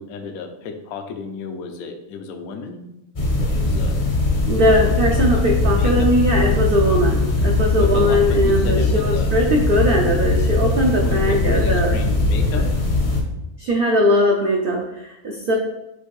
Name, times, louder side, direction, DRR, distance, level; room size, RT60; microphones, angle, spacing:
voice 1, 0.0-2.9 3.4-4.0 4.3-6.1 7.8-9.3 11.0-12.7, left 5 dB, 75° left, 6 dB, 1.0 m, -33 dB
sound 1, 3.2-13.2, left 2 dB, 40° left, 0.5 m, -20 dB
voice 2, 4.5-12.0 12.5-12.6 13.6-15.5, equal, 70° right, 0 dB, 0.5 m, -20 dB
6.3 x 2.5 x 3.1 m, 0.88 s
omnidirectional pair, 1.6 m